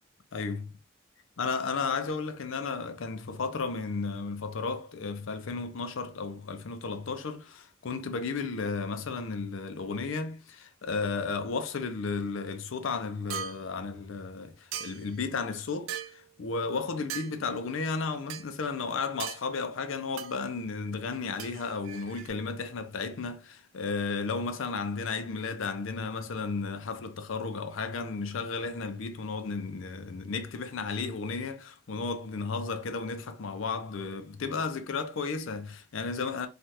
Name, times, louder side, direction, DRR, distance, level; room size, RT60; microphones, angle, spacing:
voice 1, 0.3-0.7 1.4-36.5, left 4 dB, 75° left, 0.5 m, -33 dB
sound 1, 13.3-13.6 14.7-15.2 15.9-16.2 17.1-17.3 18.3-18.5 19.2-19.4 20.2-20.3 21.4-22.3, right 9 dB, 80° right, 0.4 m, -38 dB
3.2 x 2.4 x 2.8 m
head